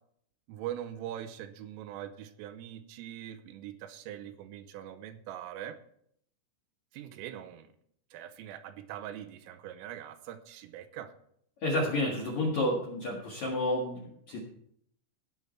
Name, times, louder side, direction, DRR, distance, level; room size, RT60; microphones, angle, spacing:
voice 1, 0.5-5.8 6.9-7.7 8.1-11.1, right 11 dB, 80° right, 10 dB, 3.3 m, -42 dB
voice 2, 11.6-14.4, left 1 dB, 55° left, -2 dB, 2.0 m, -30 dB
17.5 x 7.2 x 4.5 m, 0.67 s
omnidirectional pair, 6.0 m